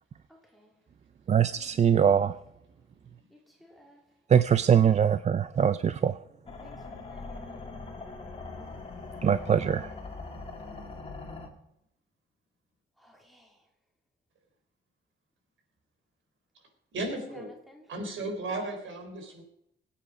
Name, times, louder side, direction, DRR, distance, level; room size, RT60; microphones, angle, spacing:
voice 1, 0.3-0.7 1.5-1.9 3.6-4.0 6.6-7.7 13.0-13.5 17.3-17.9, equal, ahead, 2.6 m, -56 dB
voice 2, 1.3-2.3 4.3-6.1 9.2-9.9, right 8 dB, 35° right, 0.4 m, -22 dB
sound 1, 6.5-11.5, left 3 dB, 30° left, 2.5 m, -41 dB
voice 3, 16.9-17.5 17.9-19.4, right 2 dB, 75° right, 4.2 m, -35 dB
22.0 x 8.7 x 5.1 m
wide cardioid pair, 165°, 20 cm